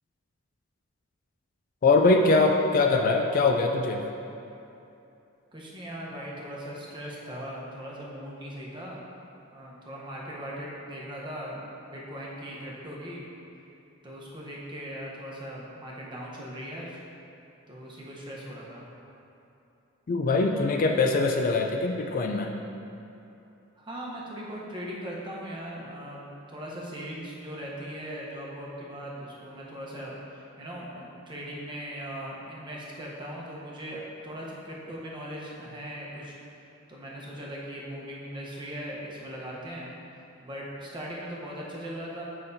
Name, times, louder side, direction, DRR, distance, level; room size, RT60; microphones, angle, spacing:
voice 1, 1.8-4.0 20.1-22.5, left 3 dB, 40° left, 3 dB, 0.3 m, -22 dB
voice 2, 5.5-9.1 9.5-13.3 14.0-17.0 17.7-18.8 23.8-26.2 26.5-36.4 36.9-39.9 40.4-42.2, equal, 25° right, -5 dB, 0.9 m, -39 dB
7.5 x 5.6 x 2.7 m, 2.8 s
head